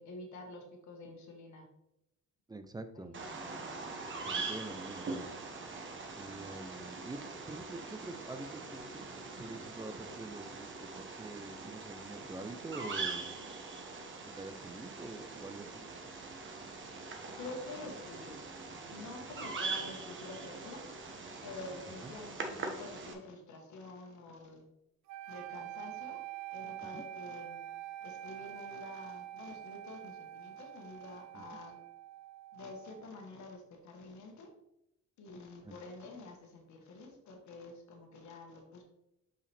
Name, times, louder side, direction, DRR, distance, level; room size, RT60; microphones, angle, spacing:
voice 1, 0.0-1.7 2.9-4.0 6.3-6.5 17.4-18.4 18.9-20.8 21.4-24.6 25.3-26.2 26.5-27.7 28.0-31.8 32.5-34.5 35.2-38.8, left 2 dB, 70° left, 2 dB, 1.4 m, -48 dB
voice 2, 2.5-3.1 4.3-5.3 6.1-9.1 9.4-13.3 14.1-15.9 22.0-22.1 26.9-27.0 31.3-31.4 35.6-35.7, right 2 dB, 15° right, 10 dB, 0.5 m, -46 dB
Bird vocalization bird call bird song, 3.1-23.1, right 4 dB, 40° right, 1.1 m, -42 dB
sound 1, 25.1-33.2, right 13 dB, 65° right, 0.5 m, -46 dB
5.6 x 4.9 x 3.4 m, 0.86 s
cardioid pair, 90°, 30 cm